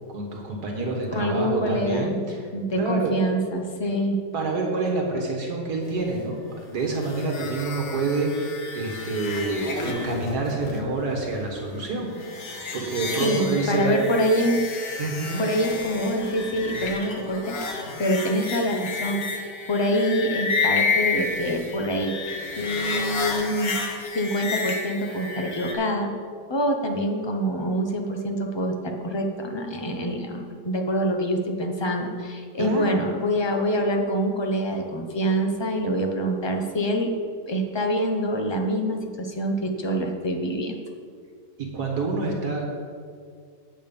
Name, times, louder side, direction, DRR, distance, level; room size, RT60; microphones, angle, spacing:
voice 1, 0.1-2.5 2.7-3.1 4.3-12.3 12.7-13.9 15.0-15.5 32.6-33.1 41.6-42.6, right 3 dB, 65° right, 0 dB, 1.8 m, -27 dB
voice 2, 1.1-2.2 2.5-4.2 13.2-14.6 15.4-22.2 22.5-23.8 24.1-26.1 26.5-37.1 37.5-40.8, equal, 25° left, 2 dB, 0.6 m, -25 dB
sound 1, 6.9-25.7, left 4 dB, 60° left, 1.6 m, -31 dB
8.7 x 8.6 x 5.3 m, 2.2 s
omnidirectional pair, 1.8 m